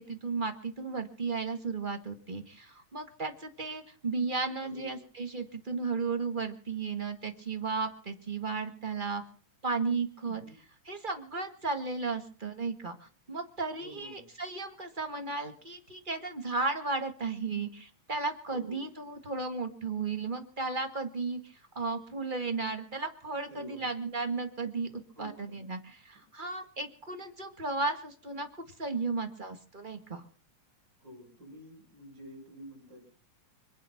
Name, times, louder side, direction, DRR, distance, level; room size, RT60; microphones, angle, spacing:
voice 1, 0.0-9.2 9.6-10.4 10.8-28.5 28.8-30.2, right 4 dB, 20° right, 6 dB, 1.5 m, -34 dB
voice 2, 4.6-5.0 10.2-10.5 13.8-14.2 18.5-18.8 23.5-23.8 25.1-25.7 31.0-33.1, equal, 50° right, -5 dB, 7.6 m, -48 dB
26.0 x 8.9 x 5.9 m, 0.42 s
omnidirectional pair, 3.3 m